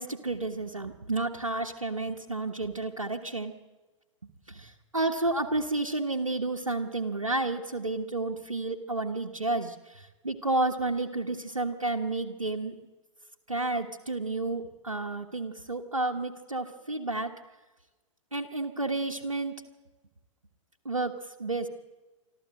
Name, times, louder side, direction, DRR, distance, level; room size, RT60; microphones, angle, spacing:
voice 1, 0.0-3.5 4.5-12.8 13.5-17.3 18.3-19.6 20.8-21.1 21.4-21.7, right 2 dB, 85° right, 2 dB, 1.5 m, -31 dB
25.5 x 13.5 x 7.8 m, 1.2 s
figure-of-eight pair, 110°, 17 cm